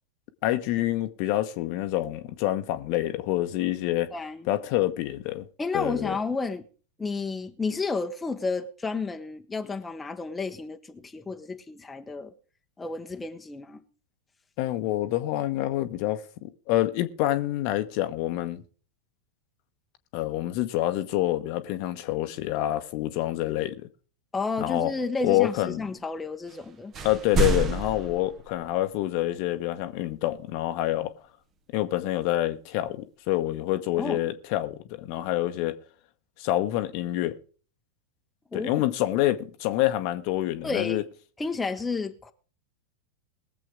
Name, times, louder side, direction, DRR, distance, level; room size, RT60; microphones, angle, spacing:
voice 1, 0.4-4.1 4.5-5.5 5.7-6.2 14.6-18.6 20.1-23.9 24.6-24.9 25.2-25.9 27.0-31.1 31.7-35.8 36.4-37.4 38.5-41.0, left 15 dB, 45° left, 1.0 m, -27 dB
voice 2, 4.1-4.4 5.6-6.7 7.0-12.3 12.8-13.8 24.3-26.9 34.0-34.2 38.5-38.7 40.6-41.0 41.4-42.3, left 4 dB, 10° left, 1.0 m, -31 dB
sound 1, 26.5-26.7 26.9-29.0, right 3 dB, 30° right, 1.2 m, -28 dB
21.5 x 7.6 x 3.7 m
figure-of-eight pair, 90°, 0 cm